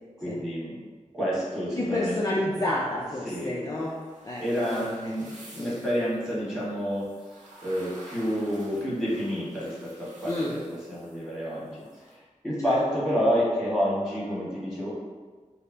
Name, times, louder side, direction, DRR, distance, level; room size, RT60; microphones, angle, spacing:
voice 1, 0.2-0.8 1.1-2.2 3.2-3.6 4.4-10.6 10.9-11.8 12.1-14.9, equal, 5° right, -9 dB, 1.4 m, -29 dB
voice 2, 1.8-4.0 4.2-4.4 5.0-5.2 5.6-5.7 10.3-10.6 12.6-12.8, left 1 dB, 30° left, -5 dB, 0.4 m, -29 dB
sound 1, 2.5-12.1, right 1 dB, 75° right, 0.8 m, -51 dB
5.1 x 2.0 x 2.7 m, 1.4 s
wide cardioid pair, 100°, 13 cm